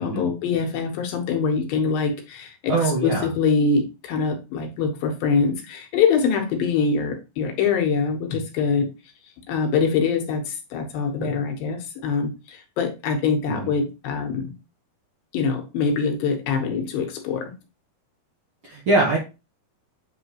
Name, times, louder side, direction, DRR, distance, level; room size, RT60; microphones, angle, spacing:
voice 1, 0.0-8.9 9.5-14.5 15.3-17.5, left 5 dB, 75° left, 2.8 m, -24 dB
voice 2, 2.7-3.3 13.5-13.7 18.6-19.2, right 2 dB, 65° right, 1.3 m, -22 dB
8.2 x 4.0 x 2.9 m
omnidirectional pair, 4.2 m